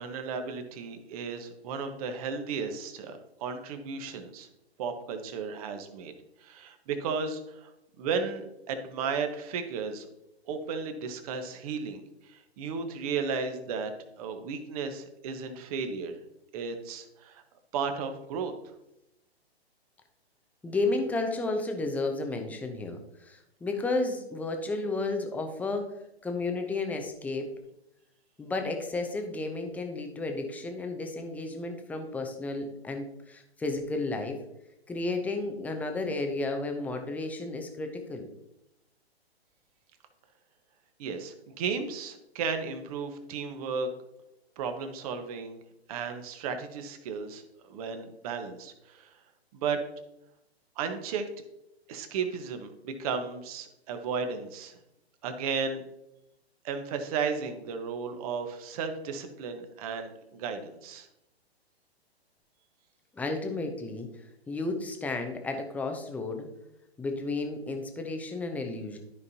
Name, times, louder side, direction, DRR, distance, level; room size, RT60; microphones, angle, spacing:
voice 1, 0.0-4.5 4.8-6.1 6.4-7.7 8.0-10.1 10.5-13.9 14.2-16.2 16.5-17.4 17.7-18.5 41.0-43.9 44.6-45.6 45.9-49.1 49.5-49.8 50.8-51.2 51.9-54.8 55.2-55.8 56.6-61.1, right 5 dB, 35° right, 7 dB, 1.2 m, -34 dB
voice 2, 20.6-25.9 26.2-27.5 28.4-34.4 34.9-38.3 63.2-64.1 64.5-66.5 67.0-69.0, left 3 dB, 5° left, 4 dB, 0.7 m, -32 dB
13.0 x 5.3 x 2.8 m, 0.84 s
figure-of-eight pair, 120°, 32 cm